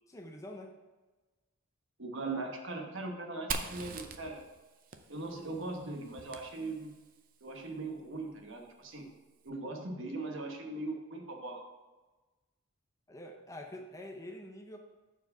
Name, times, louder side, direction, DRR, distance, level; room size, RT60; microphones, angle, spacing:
voice 1, 0.1-0.7 13.1-14.8, left 1 dB, 15° left, 3 dB, 0.5 m, -46 dB
voice 2, 2.0-4.4 5.1-6.9 7.4-9.1 9.4-11.6, right 2 dB, 55° right, 2 dB, 1.1 m, -40 dB
Fire, 3.5-7.2, right 5 dB, 40° right, 0.5 m, -42 dB
7.0 x 4.6 x 5.4 m, 1.2 s
head